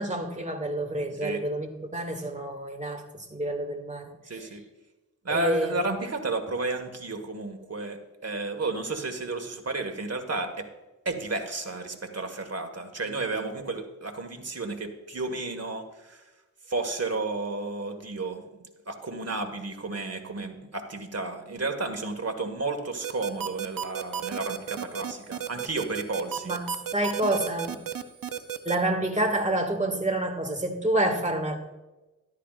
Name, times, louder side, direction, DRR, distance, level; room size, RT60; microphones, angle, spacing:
voice 1, 0.0-4.5 5.3-5.7 26.4-27.8 28.6-31.6, right 1 dB, 20° right, 4 dB, 2.0 m, -28 dB
voice 2, 4.3-4.6 5.2-10.7 11.1-16.2 16.7-18.4 18.9-26.5, right 3 dB, 50° right, 5 dB, 1.7 m, -32 dB
sound 1, 23.0-28.8, right 9 dB, 85° right, 0.7 m, -32 dB
13.0 x 12.0 x 2.5 m, 1.1 s
cardioid pair, 45°, 33 cm